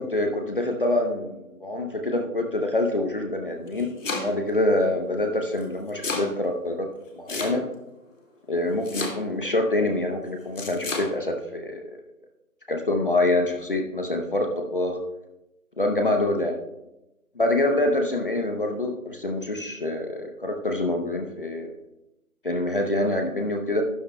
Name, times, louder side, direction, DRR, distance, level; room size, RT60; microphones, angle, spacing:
voice 1, 0.0-6.9 7.1-7.6 8.5-12.0 12.7-15.0 15.8-16.6 17.4-21.7 22.4-23.8, left 1 dB, 35° left, 4 dB, 0.8 m, -26 dB
Domestic sounds home sounds, 3.5-4.6 5.6-6.3 7.3-7.9 8.8-9.5 10.6-11.1, left 3 dB, 55° left, 2.2 m, -31 dB
12.5 x 11.5 x 2.2 m, 0.95 s
figure-of-eight pair, 165°, 45 cm